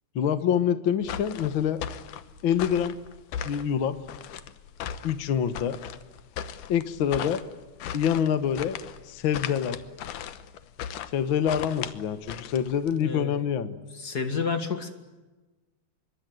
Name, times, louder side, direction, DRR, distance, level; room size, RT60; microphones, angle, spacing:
voice 1, 0.1-1.8 2.4-2.9 3.4-4.0 5.0-5.8 6.7-7.4 7.9-8.8 9.1-9.8 11.1-13.8, left 8 dB, 55° left, 11 dB, 1.4 m, -26 dB
sound 1, 1.0-13.0, left 9 dB, 75° left, 2.5 m, -38 dB
voice 2, 13.0-13.4 13.9-14.9, left 5 dB, 35° left, 7 dB, 2.0 m, -30 dB
26.0 x 23.5 x 9.3 m, 1.2 s
omnidirectional pair, 3.8 m